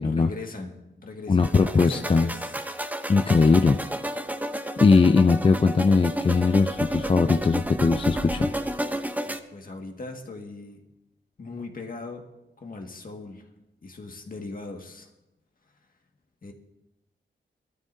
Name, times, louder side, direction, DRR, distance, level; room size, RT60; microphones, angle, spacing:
voice 1, 0.0-2.6 9.2-10.8 11.4-12.3 12.6-13.5 13.8-15.1 16.4-16.5, left 3 dB, 45° left, 2 dB, 1.9 m, -39 dB
voice 2, 1.3-2.3 3.1-3.8 4.8-8.5, left 4 dB, 30° left, 7 dB, 0.5 m, -20 dB
sound 1, 1.4-9.4, right 1 dB, 10° right, 0.8 m, -31 dB
21.5 x 13.0 x 2.7 m, 0.95 s
wide cardioid pair, 85°, 19 cm